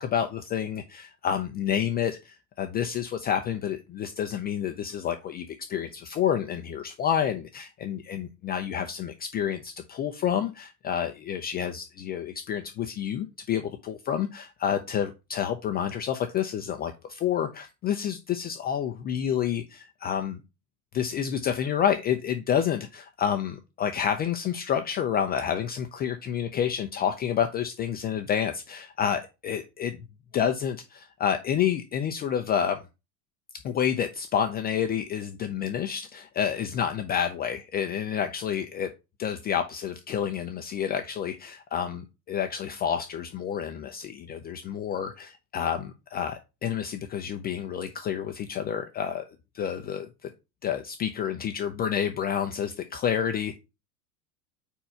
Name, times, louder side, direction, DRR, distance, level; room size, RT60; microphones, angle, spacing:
voice 1, 0.0-20.4 20.9-30.0 30.3-32.8 33.6-38.9 39.2-49.2 49.5-50.3 50.6-53.6, left 8 dB, 20° left, 6 dB, 0.4 m, -29 dB
4.6 x 4.2 x 5.5 m, 0.27 s
hypercardioid pair, 95°, 50 cm